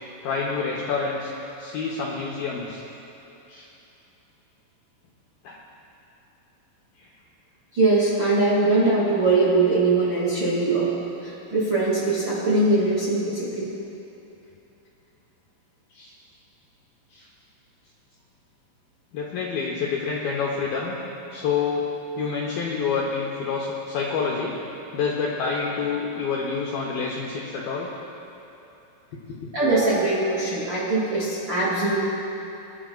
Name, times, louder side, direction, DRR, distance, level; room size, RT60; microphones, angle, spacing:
voice 1, 0.2-1.3 1.6-2.8 3.5-3.7 5.4-5.6 7.0-7.1 15.9-16.1 17.1-17.3 19.1-20.9 21.3-21.9 22.2-24.5 24.9-27.9 29.4-29.5, left 5 dB, 75° left, -4 dB, 2.2 m, -27 dB
voice 2, 7.7-10.9 11.2-13.7 29.5-31.9, right 2 dB, 40° right, -9 dB, 1.8 m, -21 dB
24.5 x 11.5 x 2.4 m, 3.0 s
omnidirectional pair, 5.4 m